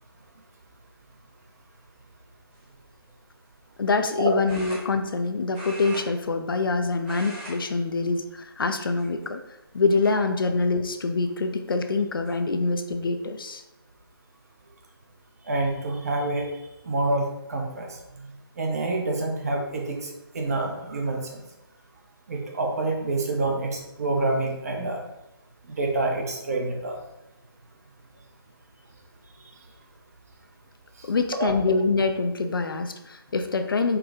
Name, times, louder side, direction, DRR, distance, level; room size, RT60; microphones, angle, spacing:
sound 1, 2.5-2.8 4.4-5.2 5.5-6.7 7.0-7.6 7.9-8.1 8.9-9.4 10.0-10.1 11.6-11.7 12.0-12.4, right 1 dB, 5° right, 0.3 m, -41 dB
voice 1, 3.8-9.4 9.7-13.6 31.0-34.0, left 3 dB, 65° left, 7 dB, 0.4 m, -25 dB
voice 2, 15.5-16.5 16.8-18.3 18.6-20.1 20.3-21.4 22.3-25.0 25.7-27.0 31.4-31.5, right 2 dB, 40° right, 1 dB, 0.7 m, -27 dB
4.5 x 2.2 x 3.6 m, 0.91 s
figure-of-eight pair, 155°, 13 cm